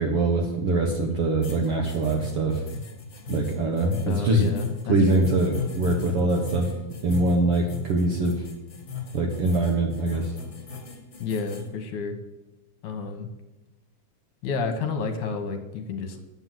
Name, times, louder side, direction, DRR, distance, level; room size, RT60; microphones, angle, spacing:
voice 1, 0.0-2.6 3.3-4.5 4.9-6.7 7.0-8.4 9.1-10.3, right 2 dB, 60° right, 1 dB, 1.6 m, -23 dB
sound 1, 1.4-11.7, left 5 dB, 35° left, 2.0 m, -37 dB
voice 2, 4.1-5.3 11.2-12.2 12.8-13.3 14.4-16.2, left 4 dB, 70° left, 6 dB, 2.4 m, -30 dB
9.6 x 7.9 x 7.6 m, 1.0 s
omnidirectional pair, 3.9 m